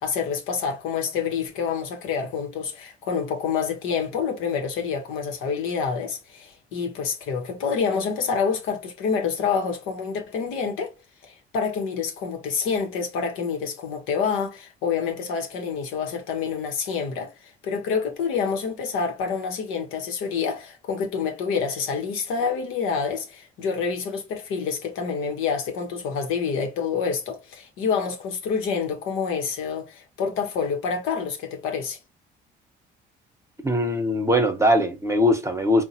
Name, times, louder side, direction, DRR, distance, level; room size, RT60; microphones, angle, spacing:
voice 1, 0.0-10.9 11.2-17.3 17.6-32.0, left 6 dB, 75° left, 0.9 m, -27 dB
voice 2, 33.6-35.8, left 1 dB, 15° right, 0.9 m, -21 dB
3.8 x 2.1 x 2.7 m
supercardioid pair, 65°, 21 cm